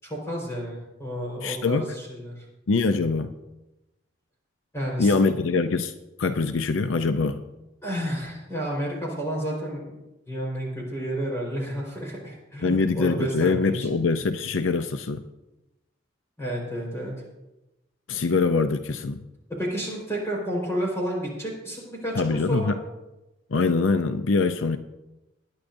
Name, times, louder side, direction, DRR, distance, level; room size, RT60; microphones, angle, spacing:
voice 1, 0.0-2.4 4.7-5.1 7.8-10.0 10.3-13.7 16.4-17.2 19.6-22.8, equal, 15° left, -2 dB, 4.3 m, -31 dB
voice 2, 1.4-1.9 2.7-3.3 5.0-5.9 6.2-7.4 12.6-15.2 18.1-19.2 22.2-22.8 23.5-24.8, left 4 dB, 75° left, 9 dB, 0.5 m, -23 dB
20.5 x 10.0 x 2.6 m, 0.99 s
head